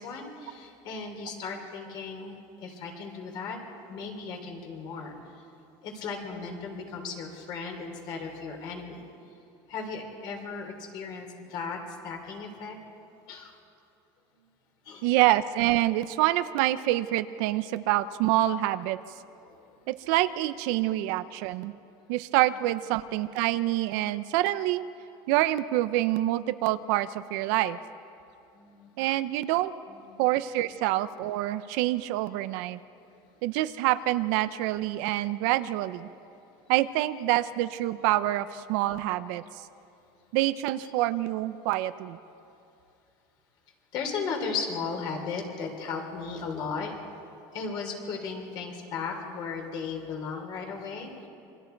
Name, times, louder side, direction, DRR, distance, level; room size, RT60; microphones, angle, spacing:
voice 1, 0.0-3.6 3.9-5.1 5.8-9.1 9.7-12.8 13.3-13.5 14.3-14.4 14.8-15.1 19.5-19.9 27.5-27.6 28.5-28.9 29.9-30.3 33.1-33.2 39.3-39.4 43.9-47.0 47.5-51.3, left 5 dB, 45° left, 3 dB, 3.6 m, -36 dB
voice 2, 15.0-19.0 19.9-21.7 22.1-24.8 25.3-27.8 29.0-29.7 30.2-32.8 33.4-36.1 36.7-39.4 40.3-42.2, right 15 dB, 65° right, 13 dB, 0.7 m, -26 dB
27.5 x 24.0 x 4.6 m, 2.6 s
cardioid pair, 175°, 11 cm